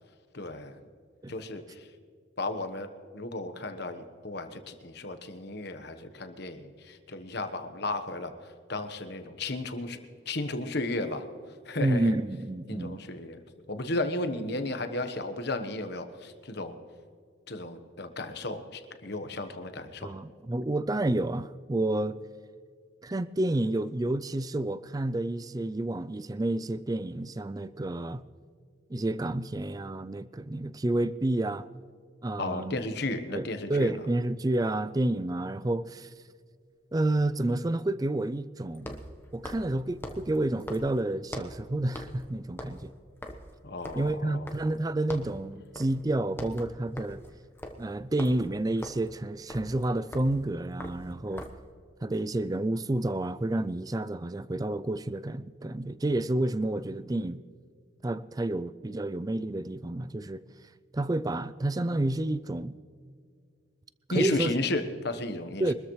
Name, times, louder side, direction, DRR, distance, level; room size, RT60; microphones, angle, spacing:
voice 1, 0.3-0.8 1.3-1.9 2.4-8.3 8.7-10.0 10.3-11.2 11.7-12.1 12.7-13.4 13.7-16.7 17.5-20.1 32.4-33.9 43.6-44.5 64.1-65.7, left 2 dB, 50° left, 1.2 m, -34 dB
voice 2, 11.8-13.0 20.0-22.2 23.0-28.2 28.9-31.7 32.2-32.8 33.3-36.1 36.9-39.0 39.3-42.9 43.9-47.2 47.8-51.5 52.0-57.4 58.0-60.4 60.9-62.8 64.1-64.6 65.6-65.7, right 1 dB, 20° right, 0.4 m, -30 dB
sound 1, 35.4-35.5 38.7-41.7 41.9-42.3 42.5-44.8 45.1-45.4 45.8-46.0 46.3-51.7, left 1 dB, 10° left, 1.1 m, -43 dB
24.0 x 13.5 x 3.2 m
head